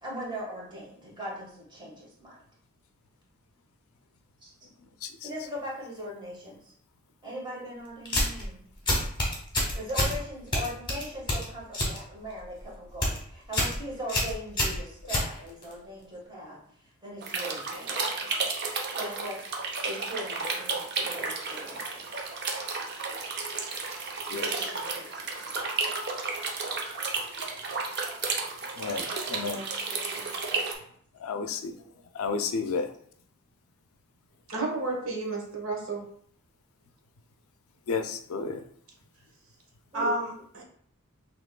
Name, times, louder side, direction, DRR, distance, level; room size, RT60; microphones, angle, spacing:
voice 1, 0.0-2.4 4.4-4.7 5.2-6.7 7.2-8.6 9.7-16.6 17.0-18.1 18.9-19.4 19.8-22.0 24.0-24.1 24.4-25.5 29.4-30.7 39.9-40.1, equal, 20° right, -4 dB, 1.4 m, -40 dB
sound 1, 8.0-8.4 8.9-10.2 10.5-12.0 12.3-12.6 12.9-13.2 13.5-13.8 14.1-15.7, left 1 dB, 20° left, 1.1 m, -27 dB
sound 2, 17.2-30.7, right 4 dB, 50° right, 0.7 m, -32 dB
voice 2, 28.7-29.6 31.2-31.8 32.1-32.9 37.9-38.7, left 4 dB, 85° left, 8 dB, 0.4 m, -32 dB
voice 3, 34.5-36.0 39.9-40.6, right 2 dB, 75° right, -1 dB, 1.1 m, -31 dB
5.9 x 3.0 x 2.2 m, 0.62 s
head